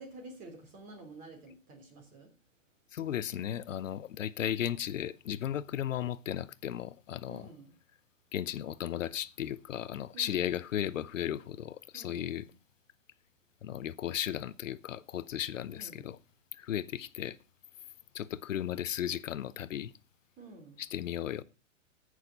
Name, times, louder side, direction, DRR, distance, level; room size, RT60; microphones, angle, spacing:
voice 1, 0.0-2.3 7.3-7.7 10.1-10.5 11.9-12.5 15.7-16.1 20.4-20.8, right 2 dB, 20° right, 3.3 m, -50 dB
voice 2, 2.9-7.5 8.3-12.4 13.6-16.2 16.6-17.4 18.1-19.9 20.8-21.4, left 10 dB, 75° left, 0.9 m, -35 dB
16.0 x 6.7 x 5.3 m
hypercardioid pair, 165°, 39 cm